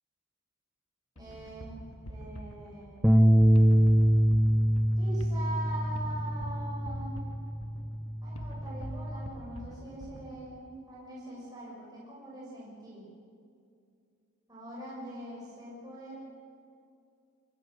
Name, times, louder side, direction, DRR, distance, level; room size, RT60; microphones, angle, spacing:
voice 1, 1.1-3.0 5.0-7.3 8.2-13.1 14.5-16.2, right 1 dB, 20° right, -6 dB, 6.6 m, -42 dB
sound 1, 1.2-10.7, equal, 85° left, 1.9 m, -45 dB
sound 2, 3.0-9.3, equal, ahead, 1.0 m, -25 dB
25.0 x 24.5 x 6.7 m, 2.3 s
head